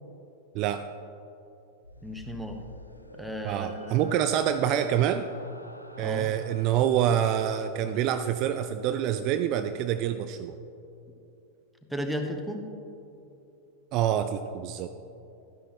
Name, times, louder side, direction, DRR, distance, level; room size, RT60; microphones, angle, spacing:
voice 1, 0.5-0.8 3.4-5.3 6.0-10.6 13.9-14.9, right 10 dB, 40° right, 9 dB, 0.4 m, -26 dB
sound 1, 1.8-9.2, equal, 85° left, 0.6 m, -47 dB
voice 2, 2.0-2.6 3.1-4.1 6.0-6.3 11.9-12.7, equal, ahead, 3 dB, 1.1 m, -34 dB
12.5 x 10.0 x 3.1 m, 2.8 s
figure-of-eight pair, 90°, 0 cm